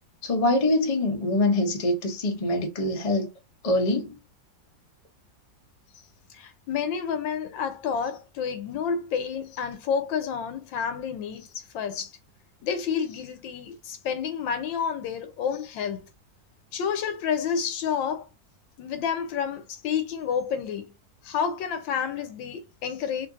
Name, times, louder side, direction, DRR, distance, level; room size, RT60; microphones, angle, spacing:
voice 1, 0.2-3.3 3.6-4.2, left 1 dB, 40° left, 0.5 m, -24 dB
voice 2, 6.3-12.1 12.6-16.1 16.7-18.3 18.8-20.9 21.2-23.3, left 7 dB, 80° left, 1.5 m, -29 dB
4.3 x 2.5 x 2.6 m
omnidirectional pair, 2.0 m